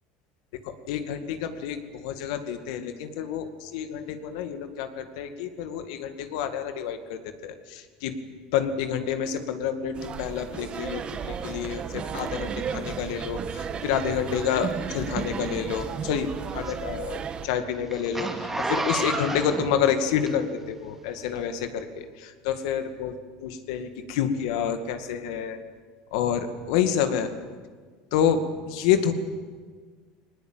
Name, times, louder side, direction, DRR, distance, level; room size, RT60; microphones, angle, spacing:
voice 1, 0.6-8.1 8.5-23.1 23.4-25.6 26.1-27.3 28.1-29.1, left 8 dB, 80° left, 8 dB, 2.2 m, -28 dB
sound 1, 9.9-17.5, right 6 dB, 35° right, 1.5 m, -34 dB
Zipper (clothing), 15.8-20.7 21.3-21.4, right 2 dB, 10° right, 2.4 m, -31 dB
20.0 x 19.5 x 9.1 m, 1.5 s
supercardioid pair, 120°, 3 cm